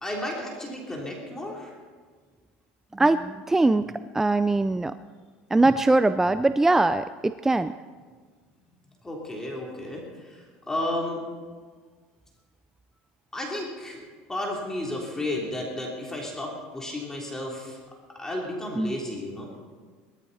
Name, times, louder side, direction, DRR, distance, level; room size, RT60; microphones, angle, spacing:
voice 1, 0.0-1.7 9.0-11.2 13.3-14.0 14.3-17.8 18.1-19.5, left 1 dB, 10° left, -2 dB, 3.3 m, -33 dB
voice 2, 2.9-3.8 4.1-5.0 5.5-7.7 18.8-19.0, right 2 dB, 10° right, 12 dB, 0.4 m, -22 dB
19.5 x 14.0 x 4.2 m, 1.5 s
supercardioid pair, 115°, 4 cm